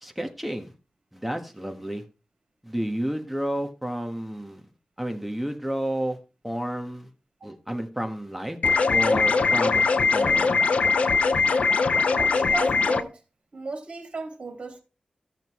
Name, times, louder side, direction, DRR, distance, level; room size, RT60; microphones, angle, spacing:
voice 1, 0.0-0.7 1.1-2.0 2.6-4.6 5.0-6.2 6.4-7.1 7.4-8.6 8.9-10.5, right 1 dB, 5° right, 1.4 m, -31 dB
sound 1, 8.6-13.0, left 4 dB, 60° left, 0.6 m, -21 dB
voice 2, 12.1-13.2 13.5-14.8, right 3 dB, 55° right, 3.0 m, -35 dB
14.5 x 6.6 x 3.1 m
wide cardioid pair, 130°, 2 cm